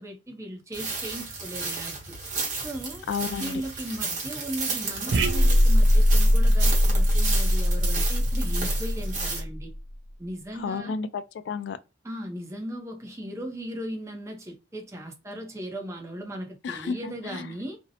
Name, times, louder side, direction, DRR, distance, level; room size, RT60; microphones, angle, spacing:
voice 1, 0.0-2.2 2.6-3.1 3.4-9.7 10.2-11.0 12.0-17.8, right 1 dB, 15° right, 0.5 m, -37 dB
sound 1, 0.7-9.4, right 4 dB, 45° right, 0.9 m, -33 dB
voice 2, 3.1-3.6 10.5-11.8 16.6-17.5, left 5 dB, 75° left, 0.3 m, -32 dB
sound 2, 5.1-9.8, equal, 70° right, 0.4 m, -21 dB
2.6 x 2.0 x 2.6 m
head